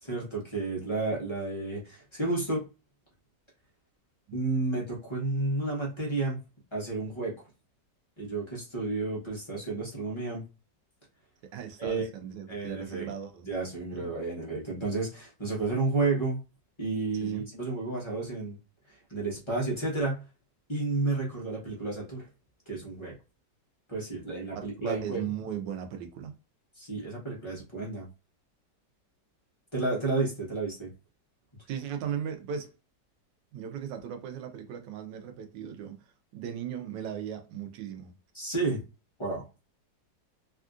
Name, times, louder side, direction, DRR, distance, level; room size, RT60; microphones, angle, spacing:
voice 1, 0.0-2.6 4.3-6.4 6.7-7.5 8.2-10.4 11.8-12.1 12.5-13.1 13.5-16.4 16.8-18.6 18.9-20.2 20.7-22.3 22.7-23.1 23.9-25.2 26.8-28.1 29.7-30.9 38.3-38.8 39.2-39.4, right 3 dB, 25° left, 0.6 m, -31 dB
voice 2, 11.4-13.5 14.0-14.1 17.2-17.4 24.5-26.3 31.7-32.8 33.5-38.1, right 8 dB, 80° right, 1.2 m, -37 dB
3.5 x 2.4 x 2.4 m
omnidirectional pair, 2.0 m